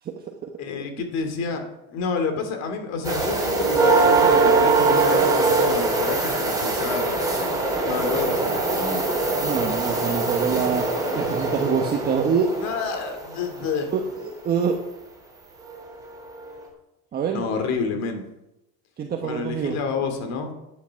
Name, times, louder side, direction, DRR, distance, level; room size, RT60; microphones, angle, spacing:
voice 1, 0.0-0.5 9.4-10.8 11.1-12.5 13.9-14.8 17.1-17.4 19.0-19.8, right 6 dB, 30° right, 2 dB, 1.3 m, -25 dB
voice 2, 0.6-1.6 1.9-7.2 7.8-9.0 12.6-13.9 17.3-18.2 19.2-20.5, left 5 dB, 55° left, 6 dB, 2.5 m, -29 dB
sound 1, 3.0-13.7 15.7-15.8 16.4-16.5, right 3 dB, 10° right, 3.6 m, -22 dB
10.5 x 10.0 x 5.8 m, 0.89 s
cardioid pair, 140°, 32 cm